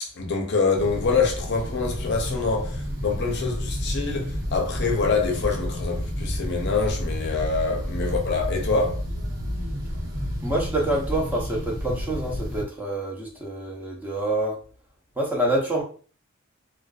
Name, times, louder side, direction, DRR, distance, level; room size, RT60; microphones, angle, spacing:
voice 1, 0.0-9.0, left 4 dB, 55° left, 0.5 m, -25 dB
sound 1, 0.7-12.6, equal, 75° right, 1.0 m, -30 dB
voice 2, 10.4-14.6 15.2-15.8, right 1 dB, 10° right, 0.5 m, -26 dB
2.4 x 2.2 x 2.3 m
head